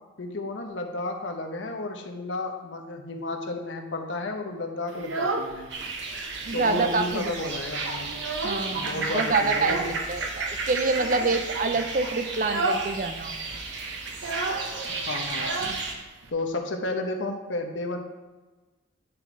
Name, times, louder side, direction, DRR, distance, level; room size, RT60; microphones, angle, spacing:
voice 1, 0.2-5.7 6.5-8.1 8.7-10.0 14.8-15.5 16.3-18.0, left 2 dB, 70° left, 4 dB, 0.9 m, -32 dB
Child speech kid speaking, 4.9-5.9 6.3-7.1 7.3-7.4 7.8-8.9 9.5-10.0 10.9-11.4 11.8-12.0 12.4-12.9 13.2-13.3 13.5-16.3, right 3 dB, 85° right, 0.8 m, -32 dB
sound 1, 5.7-15.9, right 3 dB, 65° right, 1.1 m, -33 dB
voice 2, 6.5-7.3 8.4-13.4, right 3 dB, 45° right, 9 dB, 0.5 m, -27 dB
9.3 x 4.1 x 4.5 m, 1.2 s
head